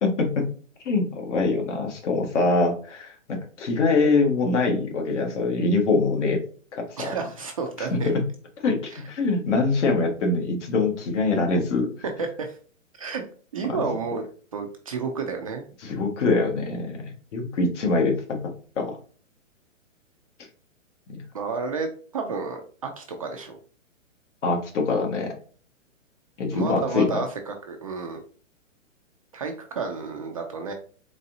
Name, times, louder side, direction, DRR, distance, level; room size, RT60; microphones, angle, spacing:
voice 1, 0.0-0.5 0.8-6.4 6.7-7.1 7.8-8.3 8.6-11.9 13.7-13.9 15.8-17.0 17.3-18.4 18.7-19.0 21.1-21.2 24.4-25.3 26.4-27.1, left 3 dB, 60° left, 2 dB, 1.6 m, -24 dB
voice 2, 7.0-8.1 8.9-9.0 12.2-12.6 13.0-13.2 13.5-14.2 14.5-15.7 21.3-23.6 26.5-28.2 29.3-30.7, right 4 dB, 30° right, 3 dB, 0.4 m, -31 dB
4.1 x 3.8 x 2.6 m, 0.42 s
hypercardioid pair, 140°, 39 cm